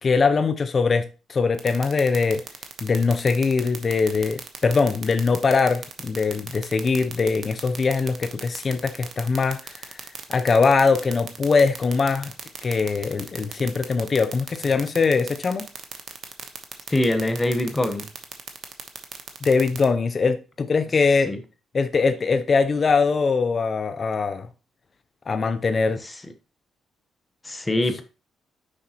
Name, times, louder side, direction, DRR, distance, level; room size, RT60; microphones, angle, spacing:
voice 1, 0.0-2.4 2.8-10.0 10.3-12.3 12.6-15.7 19.4-21.3 21.7-24.5 25.3-26.0, left 4 dB, 40° left, 0.5 m, -22 dB
sound 1, 1.6-19.8, right 7 dB, 55° right, 1.0 m, -35 dB
voice 2, 16.9-18.1 21.3-21.4 26.0-26.1 27.4-28.0, left 1 dB, 15° left, 0.9 m, -23 dB
6.4 x 5.2 x 2.9 m
cardioid pair, 90°, 0 cm